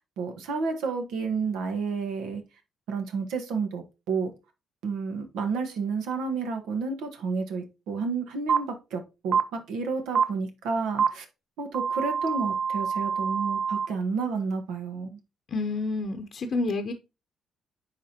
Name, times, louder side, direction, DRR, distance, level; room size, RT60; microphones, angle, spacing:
voice 1, 0.0-2.4 2.9-4.3 4.8-11.2 11.6-15.2, right 4 dB, 90° right, 6 dB, 1.3 m, -31 dB
sound 1, 8.5-8.6 9.3-9.4 10.1-10.2 11.0-11.1 11.7-13.9, right 6 dB, 65° right, 0.7 m, -25 dB
voice 2, 15.5-16.9, left 3 dB, 55° left, 5 dB, 0.7 m, -29 dB
10.0 x 3.6 x 2.8 m, 0.27 s
cardioid pair, 90°, 0 cm